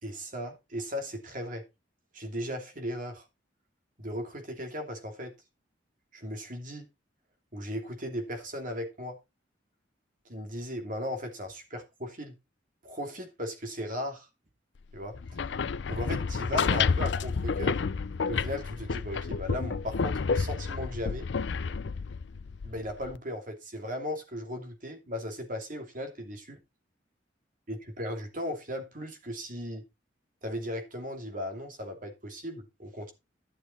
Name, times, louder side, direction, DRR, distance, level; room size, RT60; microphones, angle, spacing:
voice 1, 0.0-1.7 2.1-3.2 4.0-5.3 6.1-6.9 7.5-9.2 10.3-12.3 12.8-14.3 14.9-15.2 15.9-17.8 18.3-21.3 22.6-26.6 27.7-29.8 30.4-33.1, equal, 45° right, 2.8 m, -37 dB
sound 1, 15.1-23.2, left 5 dB, 70° left, 0.5 m, -30 dB
12.0 x 7.2 x 4.2 m
head